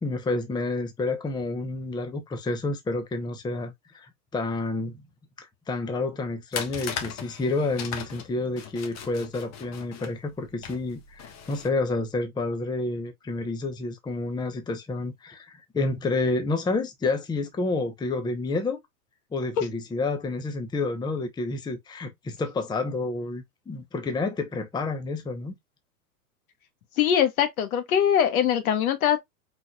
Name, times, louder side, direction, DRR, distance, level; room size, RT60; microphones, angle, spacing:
voice 1, 0.0-5.0 5.4-18.8 19.3-25.5, left 3 dB, 10° left, 0.8 m, -29 dB
sound 1, 6.5-11.7, left 7 dB, 35° left, 1.4 m, -38 dB
voice 2, 27.0-29.2, left 9 dB, 65° left, 1.7 m, -22 dB
4.9 x 3.9 x 2.3 m
hypercardioid pair, 110°, 46 cm